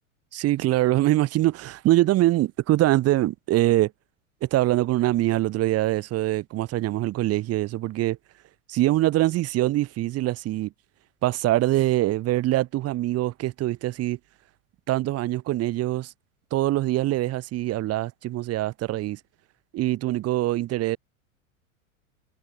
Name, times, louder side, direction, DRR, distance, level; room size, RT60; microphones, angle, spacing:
voice 1, 0.3-3.9 4.4-8.2 8.7-10.7 11.2-14.2 14.9-16.1 16.5-19.2 19.7-21.0, right 15 dB, 35° right, 3.2 m, -23 dB
figure-of-eight pair, 95°, 42 cm